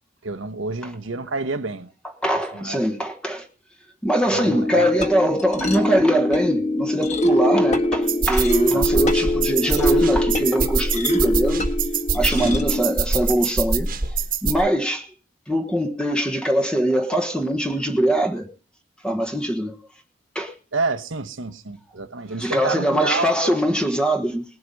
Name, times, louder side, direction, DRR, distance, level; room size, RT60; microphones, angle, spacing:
voice 1, 0.2-1.9 2.5-2.8 4.3-4.9 8.7-9.1 12.3-12.6 20.7-23.6, right 3 dB, 75° right, 1.1 m, -29 dB
voice 2, 2.2-3.5 4.0-11.6 12.1-15.1 15.5-18.5 19.0-19.8 20.3-20.5 22.4-24.4, equal, 5° left, 1.2 m, -22 dB
sound 1, 4.4-13.0, left 1 dB, 35° left, 1.5 m, -23 dB
sound 2, 8.1-14.6, right 4 dB, 45° right, 1.4 m, -24 dB
19.5 x 8.0 x 5.4 m
head